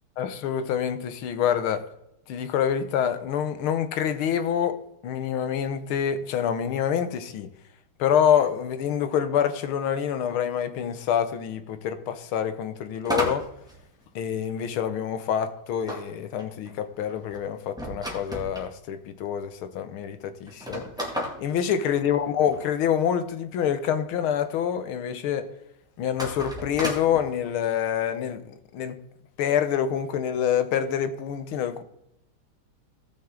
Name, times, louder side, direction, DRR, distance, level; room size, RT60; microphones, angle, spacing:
voice 1, 0.2-1.9 2.3-7.5 8.0-13.5 14.2-20.9 21.4-25.5 26.0-29.0 29.4-31.8, left 9 dB, 75° left, 1.7 m, -26 dB
sound 1, 13.0-14.6 15.9-18.7 19.4-19.5 19.7-19.8 20.5-22.6 26.1-27.2, equal, ahead, 1.9 m, -33 dB
17.0 x 6.1 x 3.7 m
omnidirectional pair, 2.4 m